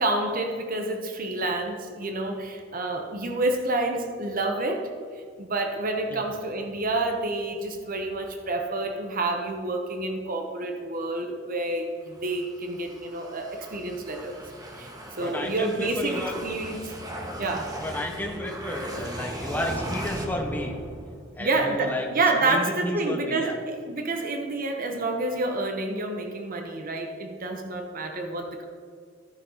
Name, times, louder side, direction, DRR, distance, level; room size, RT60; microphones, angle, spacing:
voice 1, 0.0-4.9 5.4-14.4 14.7-14.9 15.2-16.9 17.4-17.7 21.4-28.6, right 2 dB, 45° right, 4 dB, 0.9 m, -28 dB
sound 1, 12.2-21.5, right 1 dB, 20° right, 1.0 m, -37 dB
voice 2, 15.2-16.3 17.8-20.8 21.3-22.1 22.4-23.6, left 1 dB, 10° left, 1 dB, 1.1 m, -32 dB
14.5 x 5.4 x 4.0 m, 2.2 s
head